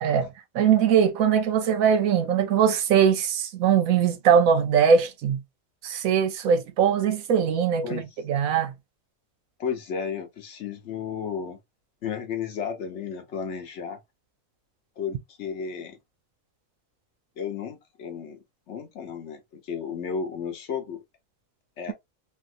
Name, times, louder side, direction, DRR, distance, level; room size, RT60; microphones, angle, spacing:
voice 1, 0.0-5.4 5.8-8.0 8.3-8.7, right 7 dB, 80° right, 1.1 m, -21 dB
voice 2, 9.6-11.6 12.0-14.0 15.0-16.0 17.4-21.0 21.8-21.9, left 6 dB, 60° left, 1.0 m, -33 dB
3.4 x 2.5 x 2.5 m
omnidirectional pair, 1.4 m